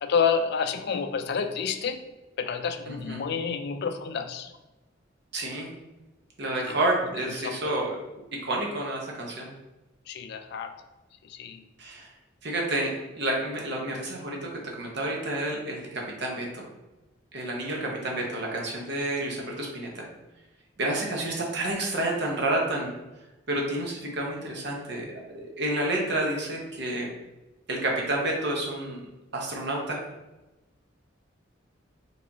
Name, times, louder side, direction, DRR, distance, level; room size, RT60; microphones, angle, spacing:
voice 1, 0.0-2.0 2.4-4.5 6.7-6.8 7.4-7.8 10.1-10.7 11.2-11.6, left 6 dB, 60° left, 8 dB, 0.4 m, -29 dB
voice 2, 2.9-3.2 5.3-5.7 6.4-8.0 8.3-9.5 11.8-12.1 12.4-12.9 13.2-14.5 14.8-16.6 17.3-20.0 20.8-23.0 23.5-25.1 25.3-27.1 27.7-29.0 29.3-30.0, right 1 dB, 60° right, -1 dB, 0.9 m, -29 dB
4.7 x 3.4 x 2.8 m, 1.0 s
head